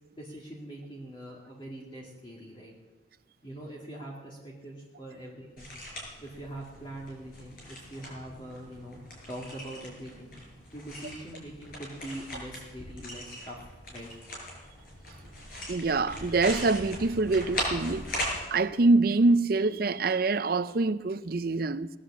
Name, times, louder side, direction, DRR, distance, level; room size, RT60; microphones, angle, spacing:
voice 1, 0.1-2.7 3.4-5.7 6.2-9.0 9.3-10.3 10.7-13.6 13.9-14.1, right 1 dB, 25° left, 2.2 m, -43 dB
sound 1, 5.6-18.4, left 1 dB, 50° left, 6.0 m, -39 dB
voice 2, 15.7-18.0 18.5-21.9, right 3 dB, 50° right, 0.5 m, -25 dB
18.5 x 10.0 x 7.4 m
head